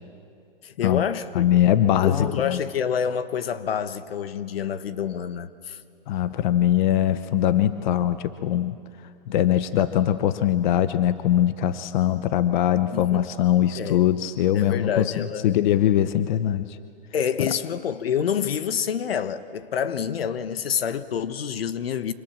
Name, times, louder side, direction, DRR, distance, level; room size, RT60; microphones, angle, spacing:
voice 1, 0.6-1.5 2.0-5.8 12.9-13.3 13.8-14.0 14.5-15.6 17.1-22.1, left 8 dB, 80° left, 1.4 m, -27 dB
voice 2, 1.3-2.6 6.1-8.8 9.3-16.8 17.4-17.5, left 11 dB, 50° left, 0.9 m, -22 dB
28.0 x 26.0 x 7.5 m
hypercardioid pair, 150°, 29 cm